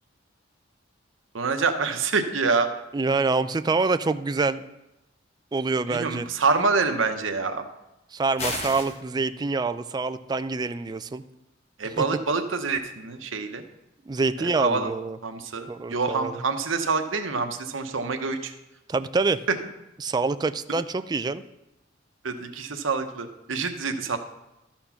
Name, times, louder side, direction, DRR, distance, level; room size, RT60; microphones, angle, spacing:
voice 1, 1.3-2.7 5.9-7.6 11.8-13.6 14.4-14.9 15.2-18.5 22.2-24.2, right 4 dB, 90° right, 7 dB, 0.9 m, -26 dB
voice 2, 2.9-4.6 5.5-6.3 8.1-11.2 11.8-12.0 14.1-15.2 15.7-16.4 18.9-19.4 20.0-21.4, right 3 dB, 20° right, 12 dB, 0.3 m, -26 dB
sound 1, 8.4-9.0, left 2 dB, 35° left, 1.2 m, -31 dB
13.0 x 4.4 x 5.7 m, 0.93 s
head